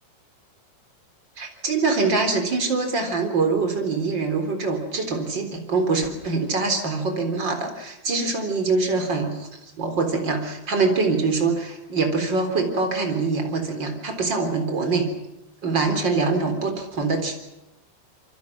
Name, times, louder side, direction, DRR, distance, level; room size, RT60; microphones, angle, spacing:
voice 1, 1.4-15.1 15.6-17.3, right 4 dB, 25° right, 5 dB, 3.7 m, -24 dB
27.5 x 24.5 x 6.1 m, 0.92 s
omnidirectional pair, 6.0 m